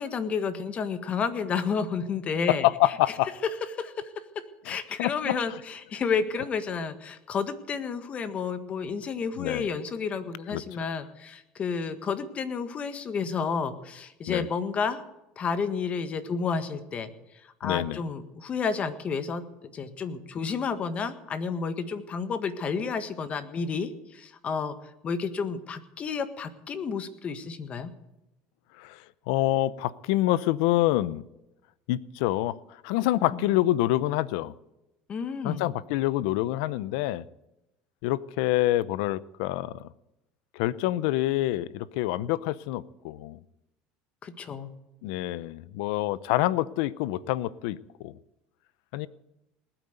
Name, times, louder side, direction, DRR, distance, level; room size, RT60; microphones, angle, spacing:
voice 1, 0.0-2.7 3.8-4.1 4.6-15.0 15.4-17.1 17.6-19.4 19.7-24.7 25.0-27.9 33.3-33.4 35.1-35.7 44.2-44.7, left 5 dB, 35° left, 1.6 m, -31 dB
voice 2, 2.5-3.3 4.7-5.6 9.4-9.7 10.5-10.6 14.3-14.5 17.6-18.0 28.8-31.2 31.9-34.5 35.4-37.2 38.0-39.9 40.5-43.4 45.0-48.1 48.9-49.1, left 16 dB, 80° left, 0.7 m, -27 dB
19.5 x 9.0 x 8.1 m
supercardioid pair, 120°, 4 cm